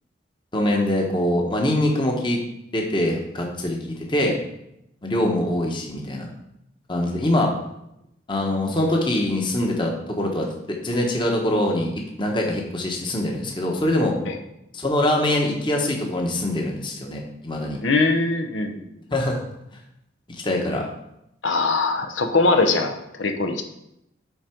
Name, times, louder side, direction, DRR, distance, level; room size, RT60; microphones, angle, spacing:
voice 1, 0.5-2.4 2.7-4.4 5.0-6.3 6.9-7.5 8.3-14.2 14.7-17.8 19.1-19.4 20.4-20.8, left 1 dB, 25° left, 1 dB, 1.0 m, -23 dB
voice 2, 17.8-18.8 21.4-23.6, left 3 dB, 85° left, 5 dB, 0.8 m, -21 dB
8.1 x 3.9 x 4.5 m, 0.83 s
head